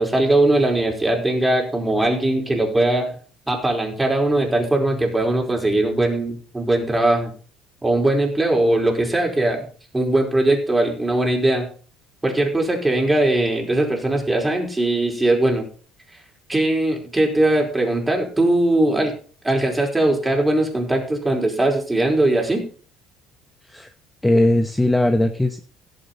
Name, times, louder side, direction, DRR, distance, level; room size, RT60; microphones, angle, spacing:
voice 1, 0.0-3.1 3.5-7.3 7.8-9.7 9.9-11.7 12.2-15.7 16.5-19.1 19.4-22.7, right 1 dB, 15° right, 1 dB, 4.7 m, -20 dB
voice 2, 24.2-25.6, left 1 dB, 10° left, 8 dB, 1.1 m, -18 dB
17.0 x 7.6 x 4.2 m, 0.41 s
hypercardioid pair, 60°, 0 cm